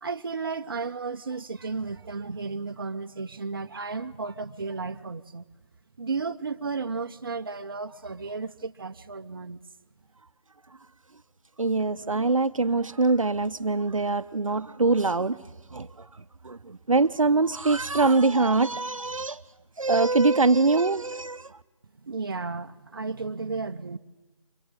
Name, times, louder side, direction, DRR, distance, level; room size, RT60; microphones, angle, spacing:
voice 1, 0.0-5.4 6.0-9.6 22.0-24.0, right 4 dB, 40° right, 1.0 m, -33 dB
voice 2, 11.6-15.4 15.7-16.1 16.4-19.4 19.8-21.6, right 3 dB, 75° right, 0.9 m, -23 dB
24.0 x 18.0 x 8.9 m
figure-of-eight pair, 165°, 17 cm